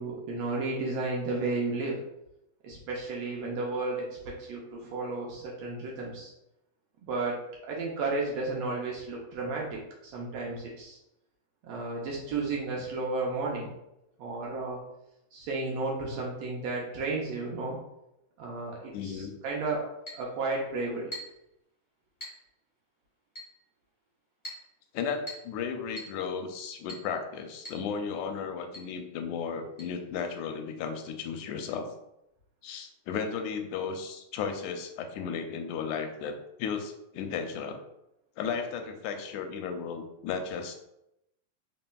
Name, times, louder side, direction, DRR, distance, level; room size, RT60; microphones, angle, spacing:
voice 1, 0.0-2.0 2.6-6.3 7.1-11.0 11.7-13.7 14.2-14.8 15.3-17.8 18.4-19.9 20.1-21.1, right 3 dB, 75° right, -3 dB, 1.7 m, -33 dB
voice 2, 18.9-19.3 24.9-31.9 32.6-37.8 38.4-40.7, left 6 dB, 90° left, 5 dB, 2.0 m, -34 dB
Chink clink, 20.1-20.3 21.1-21.4 22.2-22.4 23.4-23.6 24.4-24.7 25.3-25.5 26.0-26.2 26.9-27.1 27.6-27.9 28.1-28.2 28.7-28.9 29.8-29.9, equal, 30° left, 0.9 m, -42 dB
4.3 x 4.0 x 2.3 m, 0.85 s
omnidirectional pair, 3.4 m